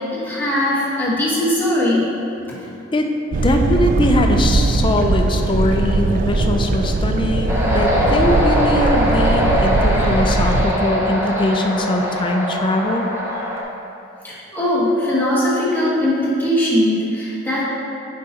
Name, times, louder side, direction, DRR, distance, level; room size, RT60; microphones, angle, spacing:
voice 1, 0.2-2.0 14.2-17.6, left 1 dB, 10° left, -8 dB, 1.3 m, -19 dB
voice 2, 2.9-13.1, left 1 dB, 25° left, 3 dB, 0.4 m, -21 dB
sound 1, 3.3-10.7, right 2 dB, 45° right, 0.3 m, -19 dB
sound 2, 7.5-13.6, equal, 15° right, 0.7 m, -21 dB
8.4 x 5.3 x 2.8 m, 2.7 s
head